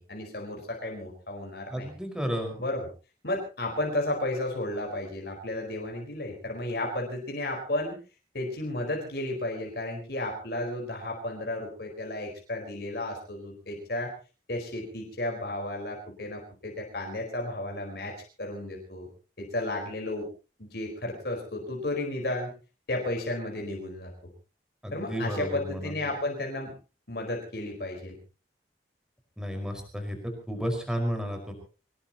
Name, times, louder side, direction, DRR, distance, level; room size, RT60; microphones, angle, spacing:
voice 1, 0.0-1.9 2.6-2.9 3.2-8.0 8.3-14.1 14.5-19.1 19.4-20.3 20.6-22.5 22.9-24.1 24.9-26.7 27.1-28.2, left 1 dB, 60° left, 1 dB, 4.7 m, -33 dB
voice 2, 1.7-2.6 24.8-26.1 29.4-31.5, equal, 5° right, 4 dB, 5.2 m, -32 dB
25.0 x 19.5 x 3.0 m, 0.34 s
head